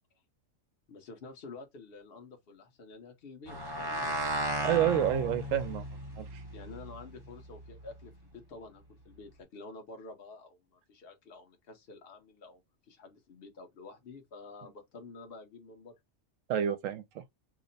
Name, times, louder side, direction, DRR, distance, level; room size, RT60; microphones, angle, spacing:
voice 1, 0.9-4.1 6.5-16.0, left 3 dB, 50° left, 1.0 m, -49 dB
sound 1, 3.5-8.1, right 1 dB, 25° right, 0.6 m, -36 dB
voice 2, 4.6-5.8 6.2-6.4 16.5-17.2, right 10 dB, 80° right, 1.0 m, -29 dB
2.9 x 2.1 x 3.9 m
omnidirectional pair, 1.3 m